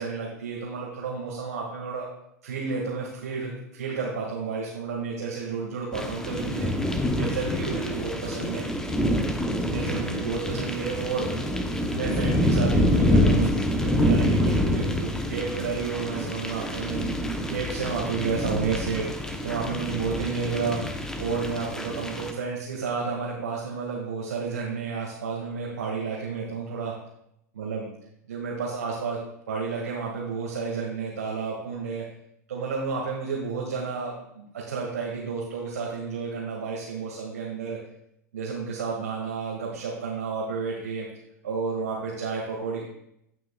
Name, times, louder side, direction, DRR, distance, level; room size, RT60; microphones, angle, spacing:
voice 1, 0.0-2.1 2.4-6.7 7.1-8.7 9.6-11.3 11.9-17.0 17.5-19.1 19.4-20.8 21.2-26.9 27.5-27.9 28.3-29.2 29.5-32.0 32.5-37.8 38.3-41.1 41.4-42.8, right 5 dB, 65° right, -4 dB, 1.9 m, -31 dB
sound 1, 5.9-22.3, left 1 dB, 5° left, 0.8 m, -26 dB
18.0 x 6.0 x 2.3 m, 0.77 s
figure-of-eight pair, 90°, 9 cm